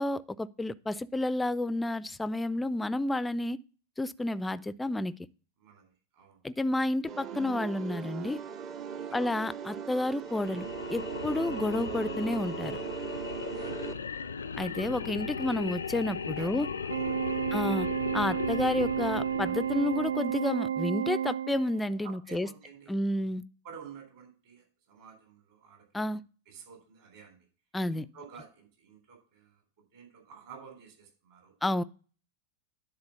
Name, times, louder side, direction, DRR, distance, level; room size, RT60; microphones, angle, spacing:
voice 1, 0.0-3.6 4.0-5.1 6.4-8.4 9.1-12.8 14.6-16.7 17.5-17.9 18.1-22.5 22.9-23.4 25.9-26.2 27.7-28.1 31.6-31.8, left 1 dB, 10° left, 0.4 m, -30 dB
voice 2, 5.6-6.4 9.0-9.3 13.5-14.3 16.3-17.5 22.0-23.0 23.6-26.2 26.5-27.5 27.9-29.6 29.9-31.5, right 6 dB, 50° right, 3.3 m, -51 dB
sound 1, 7.1-13.9, right 7 dB, 35° right, 0.7 m, -38 dB
sound 2, 10.3-20.6, left 5 dB, 70° left, 0.4 m, -37 dB
Organ, 16.9-22.0, right 9 dB, 75° right, 0.3 m, -31 dB
10.5 x 3.8 x 6.7 m
figure-of-eight pair, 90°, 0 cm